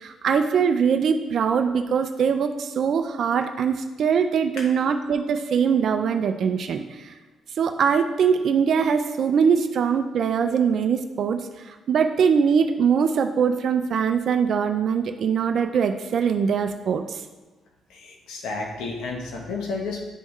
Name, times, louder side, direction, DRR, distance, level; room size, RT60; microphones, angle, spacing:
voice 1, 0.0-6.8 7.6-11.4 11.9-17.0, right 6 dB, 60° right, 6 dB, 0.4 m, -22 dB
voice 2, 17.9-20.0, left 3 dB, 90° left, 1 dB, 0.9 m, -31 dB
9.9 x 3.6 x 3.1 m, 1.2 s
cardioid pair, 90°, 0 cm